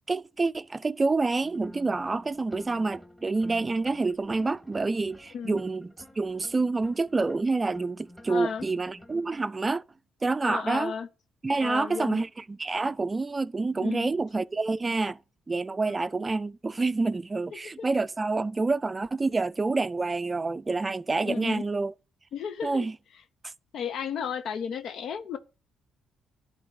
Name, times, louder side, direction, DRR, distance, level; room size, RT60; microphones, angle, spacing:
voice 1, 0.1-9.8 10.2-10.9 11.4-15.2 15.5-21.9 22.6-23.0 23.4-23.5, right 3 dB, 25° right, 0.4 m, -28 dB
sound 1, 1.4-9.3, left 1 dB, 10° left, 1.6 m, -50 dB
voice 2, 8.3-8.6 10.4-11.1 11.6-12.2 13.8-14.1 17.6-17.9 21.2-21.6 22.3-22.8 23.7-25.4, left 7 dB, 70° left, 0.6 m, -33 dB
11.0 x 4.0 x 4.7 m
cardioid pair, 90°, 0 cm